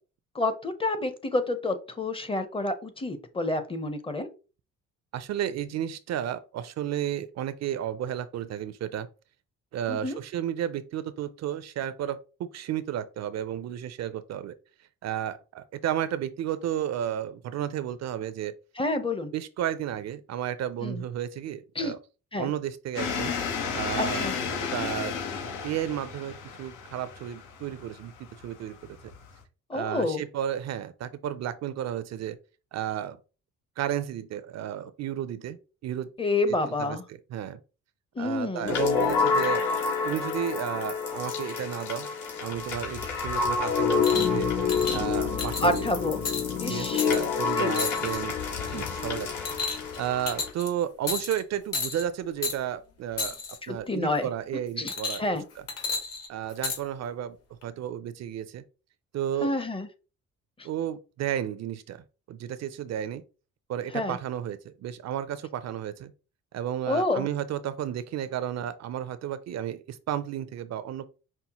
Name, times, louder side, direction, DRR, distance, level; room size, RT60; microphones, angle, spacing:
voice 1, 0.3-4.3 9.9-10.2 18.8-19.3 20.8-21.0 21.8-21.9 22.3-22.5 24.0-24.3 29.7-30.2 36.2-37.0 38.2-38.7 45.6-46.2 46.6-47.2 47.6-47.7 48.7-48.8 53.7-54.3 54.8-54.9 55.2-55.4 59.4-59.9 63.9-64.2 66.9-67.3, left 2 dB, 20° left, 0.6 m, -28 dB
voice 2, 5.1-9.1 9.7-14.5 15.0-18.5 19.3-22.0 22.4-23.3 23.7-24.3 24.7-25.2 25.6-28.1 28.4-28.8 29.0-29.1 29.7-32.4 32.7-33.2 33.8-35.6 35.8-36.1 36.8-37.6 38.2-39.7 40.1-42.1 42.4-44.5 44.9-46.0 46.6-48.3 48.7-49.4 50.0-53.4 53.7-55.2 55.6-55.7 56.3-57.4 57.6-58.6 59.1-59.5 60.6-63.2 63.7-66.1 66.5-71.1, right 10 dB, 60° right, 0.4 m, -32 dB
sound 1, 22.9-29.4, left 6 dB, 90° left, 1.0 m, -33 dB
sound 2, 38.6-50.5, left 5 dB, 75° left, 1.8 m, -28 dB
sound 3, 44.0-44.4 44.7-45.0 45.4-45.8 46.3-46.5 47.0-47.3 47.8-48.2 48.6-48.9 49.5-50.0 50.3-50.7 51.1-51.4 51.7-52.0 52.4-52.6 53.2-53.6 54.9-55.4 55.7-56.8 57.6-57.7, left 4 dB, 55° left, 1.4 m, -32 dB
5.5 x 2.1 x 2.9 m
cardioid pair, 90°, 30 cm